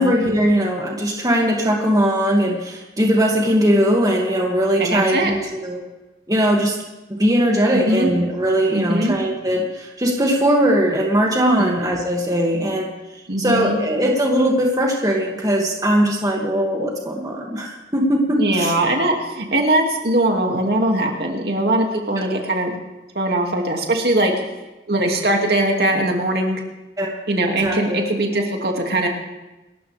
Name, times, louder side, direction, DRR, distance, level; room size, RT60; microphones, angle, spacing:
voice 1, 0.0-5.8 6.3-6.8 7.1-12.9 13.4-18.7 27.0-27.2 27.6-28.0, equal, 20° right, -1 dB, 2.3 m, -19 dB
voice 2, 4.8-5.3 7.7-8.1 8.7-9.2 11.6-11.7 13.3-13.8 18.4-22.7 23.1-24.3 24.9-26.6 27.3-29.1, right 1 dB, 60° right, 1 dB, 2.5 m, -20 dB
27.5 x 14.0 x 3.5 m, 1.0 s
head